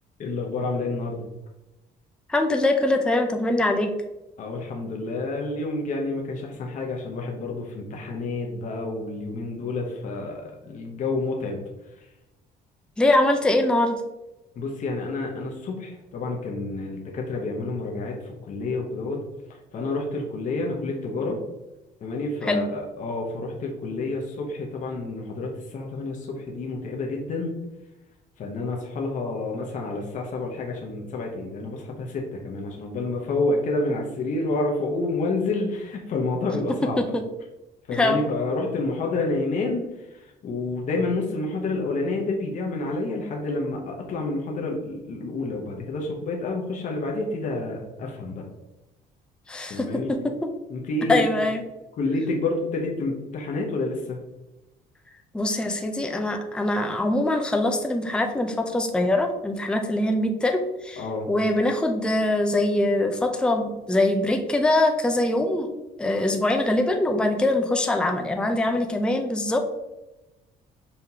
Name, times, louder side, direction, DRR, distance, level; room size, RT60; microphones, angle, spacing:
voice 1, 0.2-1.3 4.4-11.6 14.6-19.2 19.7-21.4 22.0-27.5 28.4-37.0 37.9-39.8 40.4-48.4 49.7-50.1 50.7-51.2 52.0-54.2 61.0-61.3, left 2 dB, 50° left, 0 dB, 0.9 m, -29 dB
voice 2, 2.3-3.9 13.0-14.0 22.4-22.6 37.0-37.2 37.9-38.3 49.5-50.2 51.1-51.6 55.3-65.7 66.0-69.6, left 1 dB, 5° left, 5 dB, 0.5 m, -23 dB
5.7 x 3.3 x 2.8 m, 1.0 s
cardioid pair, 110°, 17 cm